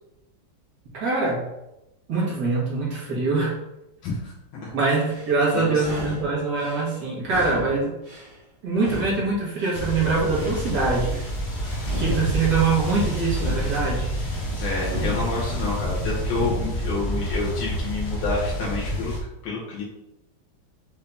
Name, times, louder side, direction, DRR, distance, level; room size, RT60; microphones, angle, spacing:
voice 1, 0.9-1.4 2.1-3.5 4.7-8.0 8.6-11.2 12.0-14.1, right 3 dB, 60° right, -5 dB, 2.0 m, -23 dB
voice 2, 4.0-4.3 4.6-4.8 5.5-5.8 14.5-19.1 19.4-19.8, left 3 dB, 90° left, -6 dB, 1.9 m, -29 dB
sound 1, 4.9-5.4 5.7-6.8 7.2-8.4 8.7-9.8 10.2-11.3 11.8-12.9 13.3-14.3 14.8-15.8 16.2-16.8, equal, 75° right, 2.2 m, -35 dB
sound 2, 9.7-19.2, equal, 60° left, 1.4 m, -28 dB
5.6 x 2.7 x 3.5 m, 0.91 s
omnidirectional pair, 2.1 m